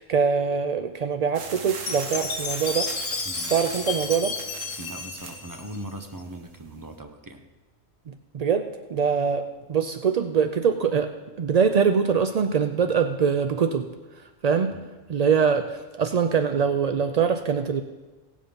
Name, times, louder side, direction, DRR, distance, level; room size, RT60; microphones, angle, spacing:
voice 1, 0.0-2.9 3.5-4.4 8.1-11.1 11.4-13.9 14.4-14.8 15.1-17.8, right 6 dB, 65° right, 7 dB, 0.3 m, -23 dB
sound 1, 1.3-6.9, right 5 dB, 90° right, 1.4 m, -40 dB
Chime, 1.9-6.2, left 4 dB, 65° left, 1.4 m, -32 dB
voice 2, 4.8-7.5 14.7-14.9, right 1 dB, 20° right, 6 dB, 0.8 m, -39 dB
17.0 x 7.5 x 5.2 m, 1.2 s
omnidirectional pair, 1.3 m